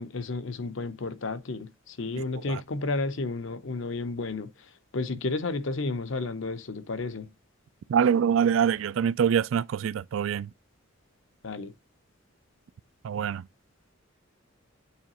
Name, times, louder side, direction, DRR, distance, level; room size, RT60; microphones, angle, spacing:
voice 1, 0.0-4.5 4.9-7.3 11.4-11.7, left 3 dB, 70° left, 0.7 m, -32 dB
voice 2, 7.9-10.5 13.0-13.4, right 8 dB, 75° right, 0.3 m, -24 dB
8.6 x 3.9 x 2.9 m
head